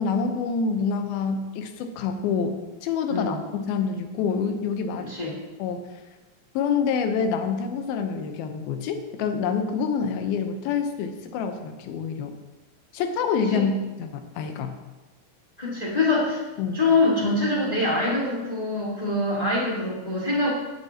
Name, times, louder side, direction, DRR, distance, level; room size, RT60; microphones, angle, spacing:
voice 1, 0.0-5.1 5.6-5.9 6.5-12.4 12.9-13.7 14.0-14.7 16.6-16.8, left 6 dB, 75° left, 6 dB, 2.6 m, -27 dB
voice 2, 3.1-3.4 5.0-5.4 13.5-13.6 15.6-16.4 16.7-20.5, left 2 dB, 30° left, -4 dB, 0.7 m, -24 dB
16.5 x 8.4 x 2.9 m, 1.2 s
omnidirectional pair, 4.6 m